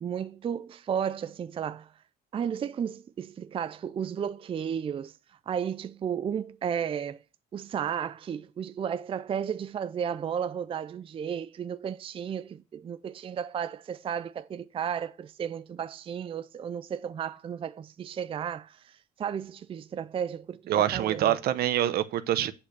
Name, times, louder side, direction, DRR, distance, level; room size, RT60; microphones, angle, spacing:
voice 1, 0.0-1.9 2.3-5.1 5.5-7.2 7.5-21.4, right 8 dB, 30° right, 0.4 m, -33 dB
voice 2, 20.7-22.5, right 11 dB, 65° right, 0.8 m, -25 dB
8.6 x 5.1 x 6.7 m
cardioid pair, 110°, 17 cm